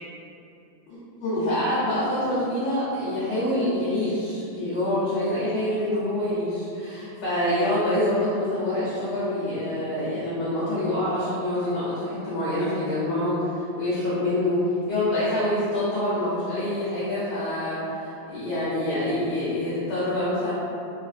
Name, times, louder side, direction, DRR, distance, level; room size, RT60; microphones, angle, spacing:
voice 1, 0.9-14.6 14.9-20.5, left 1 dB, 65° left, -11 dB, 1.9 m, -26 dB
4.6 x 3.7 x 2.4 m, 2.7 s
omnidirectional pair, 3.6 m